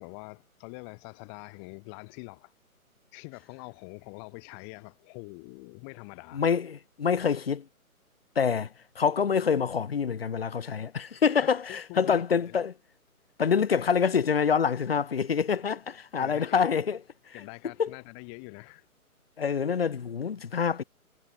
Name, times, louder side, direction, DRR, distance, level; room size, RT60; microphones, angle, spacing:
voice 1, 0.0-2.5 3.1-6.4 11.4-12.6 15.7-15.8 16.2-16.6 17.3-18.9, left 40 dB or more, 20° left, 2.9 m, -45 dB
voice 2, 6.3-7.7 8.4-8.7 9.0-12.7 13.4-17.0 17.3-17.4 17.8-17.9 19.4-20.8, left 6 dB, 45° left, 0.6 m, -26 dB
figure-of-eight pair, 135°, 44 cm